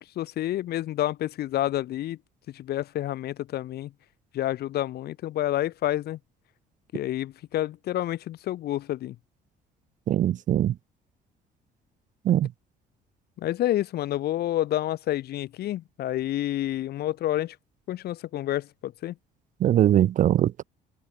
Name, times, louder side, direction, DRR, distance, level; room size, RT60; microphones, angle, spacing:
voice 1, 0.0-2.2 2.5-3.9 4.3-6.2 6.9-9.2 13.4-17.6 17.9-19.1, left 13 dB, 70° left, 7.3 m, -29 dB
voice 2, 10.1-10.7 12.2-12.5 19.6-20.6, right 12 dB, 50° right, 0.5 m, -21 dB
cardioid pair, 110°, 17 cm